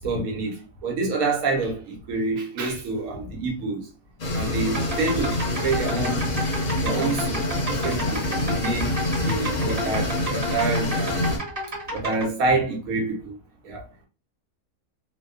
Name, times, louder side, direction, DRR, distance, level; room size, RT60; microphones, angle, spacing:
voice 1, 0.0-3.9 4.3-6.3 6.8-7.4 7.7-8.9 9.2-11.3 11.9-13.4 13.6-13.9, right 3 dB, 85° right, 1.2 m, -27 dB
sound 1, 4.2-11.4, left 1 dB, 45° left, 0.6 m, -26 dB
sound 2, 4.6-12.3, right 1 dB, 25° right, 1.2 m, -32 dB
2.7 x 2.1 x 2.3 m
omnidirectional pair, 1.5 m